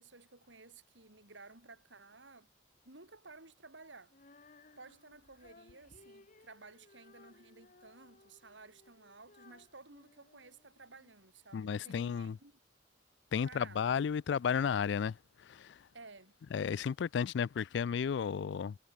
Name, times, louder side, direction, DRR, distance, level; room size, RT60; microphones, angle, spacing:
voice 1, 0.0-2.5 2.8-4.2 4.8-12.6 13.4-13.9 15.9-16.4, right 3 dB, 80° right, 5.4 m, -55 dB
Female singing, 4.1-11.2, left 2 dB, 45° left, 1.9 m, -62 dB
voice 2, 11.5-12.4 13.3-15.9 16.5-18.8, left 7 dB, 65° left, 0.3 m, -33 dB
head